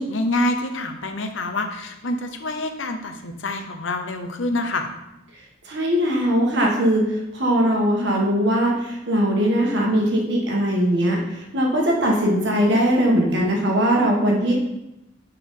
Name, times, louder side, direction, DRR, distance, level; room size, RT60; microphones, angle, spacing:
voice 1, 0.0-4.9, left 2 dB, 80° left, 6 dB, 0.9 m, -26 dB
voice 2, 5.6-14.5, equal, 65° right, -1 dB, 1.7 m, -20 dB
9.7 x 4.6 x 3.8 m, 0.92 s
head